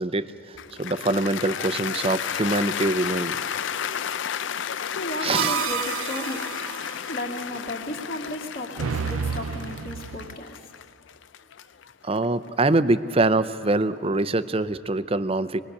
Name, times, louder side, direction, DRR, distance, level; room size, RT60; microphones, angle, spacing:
voice 1, 0.0-3.4 5.2-5.6 12.0-15.6, right 2 dB, 25° right, 13 dB, 0.6 m, -24 dB
Cheering / Applause, 0.6-12.8, left 8 dB, 60° left, 0.4 m, -32 dB
voice 2, 4.5-6.4 7.1-10.7, left 1 dB, 45° left, 0 dB, 2.3 m, -34 dB
sound 1, 5.3-7.0 8.8-10.4, right 7 dB, 80° right, 0.4 m, -30 dB
25.5 x 20.0 x 6.6 m, 2.9 s
head